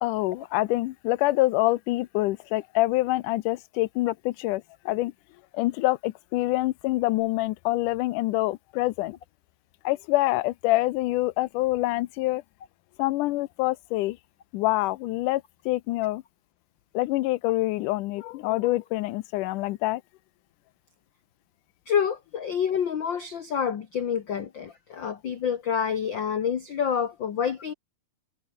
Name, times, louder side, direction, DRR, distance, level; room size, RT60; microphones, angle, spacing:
voice 1, 0.0-5.1 5.5-9.2 9.8-12.4 13.0-14.2 14.5-16.2 16.9-20.0, left 18 dB, 85° left, 2.2 m, -26 dB
voice 2, 21.9-27.7, left 7 dB, 50° left, 1.5 m, -28 dB
omnidirectional pair, 3.6 m